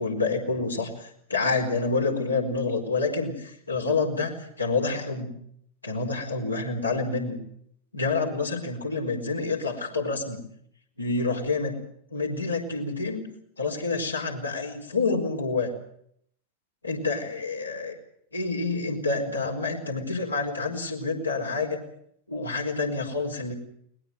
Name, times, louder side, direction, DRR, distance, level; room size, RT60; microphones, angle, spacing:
voice 1, 0.0-5.3 5.8-7.4 7.9-10.4 11.0-11.8 12.1-13.2 13.6-15.7 16.8-17.9 18.3-21.8 22.3-23.5, left 3 dB, 85° left, 0 dB, 4.5 m, -28 dB
21.0 x 20.0 x 7.9 m, 0.69 s
figure-of-eight pair, 90°, 0 cm